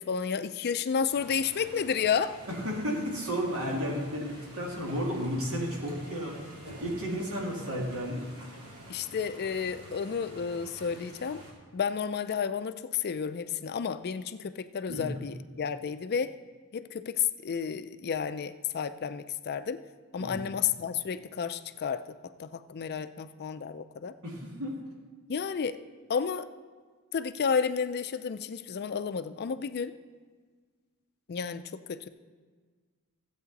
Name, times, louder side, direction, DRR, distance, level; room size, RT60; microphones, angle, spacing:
voice 1, 0.0-2.3 8.9-11.4 11.7-16.4 16.7-19.8 20.1-22.0 22.4-24.1 25.3-25.8 26.1-26.5 27.1-29.9 31.3-32.1, left 6 dB, 45° left, 11 dB, 0.4 m, -31 dB
sound 1, 1.1-11.5, equal, 80° right, 3.1 m, -48 dB
voice 2, 2.5-6.4 6.8-8.3 14.9-15.1 20.2-20.5 24.2-24.8, equal, 65° right, -2 dB, 2.5 m, -33 dB
15.0 x 8.1 x 4.0 m, 1.5 s
head